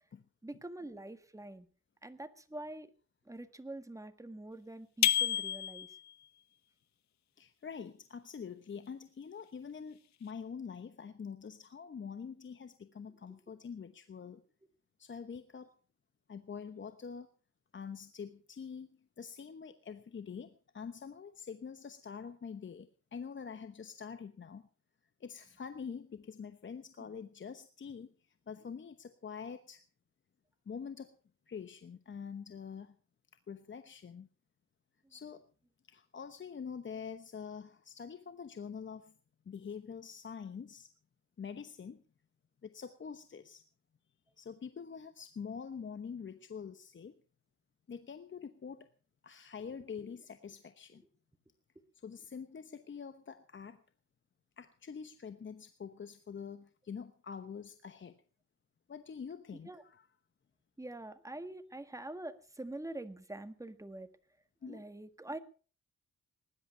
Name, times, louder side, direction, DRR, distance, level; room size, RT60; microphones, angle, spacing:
voice 1, 0.4-1.7 2.0-2.9 3.2-6.0 35.0-35.1 50.0-50.1 59.6-59.8 60.8-64.1 64.6-65.4, right 1 dB, 10° right, 9 dB, 1.7 m, -45 dB
sound 1, 5.0-6.1, left 11 dB, 65° left, 0.7 m, -30 dB
voice 2, 7.4-14.4 15.0-15.7 16.3-17.3 17.7-18.9 19.2-24.7 25.2-29.8 30.7-31.2 31.5-33.0 33.5-34.3 35.1-35.5 35.9-39.1 39.4-40.9 41.4-42.0 42.6-43.6 44.4-47.2 47.9-48.9 49.2-51.0 52.0-53.8 54.6-58.2 58.9-60.1 64.6-64.8, left 6 dB, 40° left, 10 dB, 1.1 m, -45 dB
19.0 x 11.5 x 5.6 m, 0.40 s
cardioid pair, 100°, 30 cm